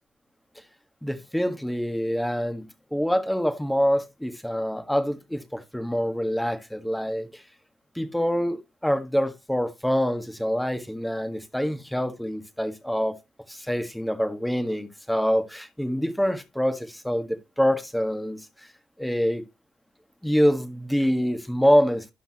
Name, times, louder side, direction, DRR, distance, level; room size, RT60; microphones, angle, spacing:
voice 1, 1.0-7.4 7.9-13.2 13.5-18.7 19.0-19.4 20.2-22.1, equal, 5° left, 1.6 m, -25 dB
12.0 x 5.8 x 2.9 m
cardioid pair, 90°, 0 cm